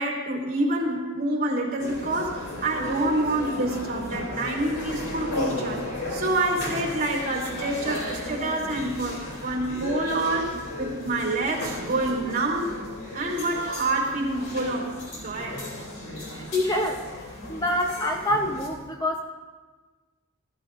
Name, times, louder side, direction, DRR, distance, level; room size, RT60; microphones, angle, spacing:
voice 1, 0.0-5.8 6.1-12.8 13.1-15.6, right 2 dB, 40° right, -1 dB, 2.9 m, -27 dB
sound 1, 1.8-18.7, left 1 dB, 80° left, 3.1 m, -35 dB
voice 2, 16.3-17.0 17.5-19.2, left 1 dB, 20° left, 2 dB, 0.7 m, -26 dB
19.5 x 13.5 x 2.5 m, 1.3 s
head